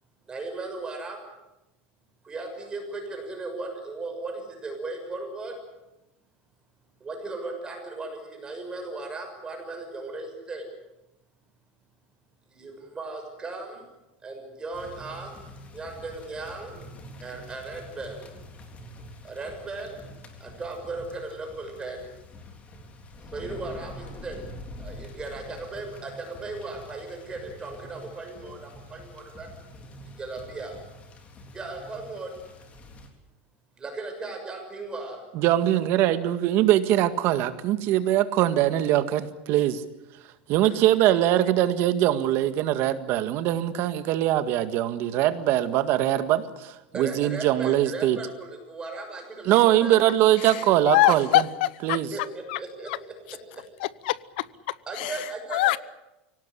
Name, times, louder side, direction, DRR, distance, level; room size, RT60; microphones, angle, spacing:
voice 1, 0.3-1.2 2.2-5.5 7.0-10.6 12.5-13.8 14.2-15.3 15.7-16.8 17.2-18.3 19.2-20.0 20.4-22.1 23.3-24.4 24.8-29.5 30.2-30.8 31.5-32.3 33.8-35.3 40.6-40.7 46.9-50.0 52.1-52.9 53.5-53.6 54.9-55.8, right 3 dB, 15° right, 3 dB, 6.5 m, -37 dB
sound 1, 14.7-33.1, left 1 dB, 25° left, 3.7 m, -46 dB
voice 2, 35.3-39.8 40.5-48.2 49.5-51.5 51.8-52.1, right 13 dB, 45° right, 10 dB, 1.8 m, -22 dB
voice 3, 50.9-52.0 52.5-52.6 53.8-54.4 55.0-55.1 55.5-55.8, left 16 dB, 70° left, 19 dB, 1.0 m, -23 dB
24.5 x 18.0 x 9.9 m, 0.97 s
supercardioid pair, 155°, 6 cm